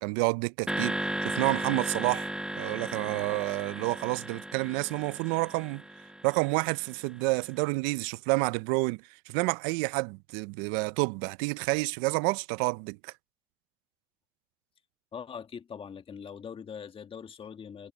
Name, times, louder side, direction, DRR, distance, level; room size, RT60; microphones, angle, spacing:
voice 1, 0.0-5.8 6.2-13.1, right 26 dB, 85° right, 0.5 m, -29 dB
sound 1, 0.7-7.0, right 1 dB, 5° right, 1.1 m, -35 dB
voice 2, 15.1-17.9, left 7 dB, 55° left, 2.1 m, -42 dB
hypercardioid pair, 40°, 11 cm